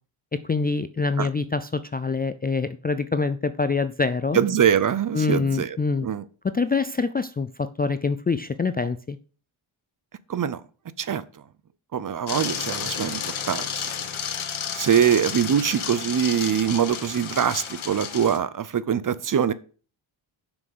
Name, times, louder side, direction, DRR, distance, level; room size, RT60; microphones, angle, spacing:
voice 1, 0.3-4.4 5.1-6.1 6.4-9.2, left 4 dB, 20° left, 0.3 m, -25 dB
voice 2, 4.3-5.8 6.0-6.2 10.3-10.6 11.0-11.4 11.9-13.7 14.7-19.5, right 8 dB, 40° right, 0.6 m, -23 dB
sound 1, 12.3-18.4, left 7 dB, 75° left, 1.4 m, -32 dB
7.4 x 6.1 x 6.6 m
cardioid pair, 110°, 49 cm